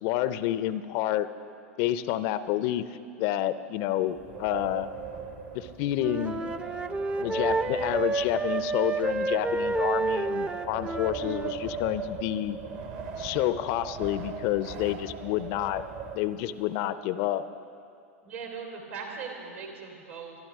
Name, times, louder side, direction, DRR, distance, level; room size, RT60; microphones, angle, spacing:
voice 1, 0.0-1.3 1.8-2.8 3.2-4.9 5.5-6.4 7.2-12.6 13.2-15.8 16.1-17.4, left 13 dB, 45° left, 14 dB, 0.5 m, -29 dB
Wind, 4.1-16.7, right 5 dB, 50° right, 1.4 m, -39 dB
Wind instrument woodwind instrument, 5.9-11.6, right 3 dB, 10° right, 0.6 m, -29 dB
voice 2, 18.2-20.4, right 5 dB, 65° right, 0 dB, 3.4 m, -39 dB
23.5 x 11.5 x 3.6 m, 2.4 s
hypercardioid pair, 100°, 8 cm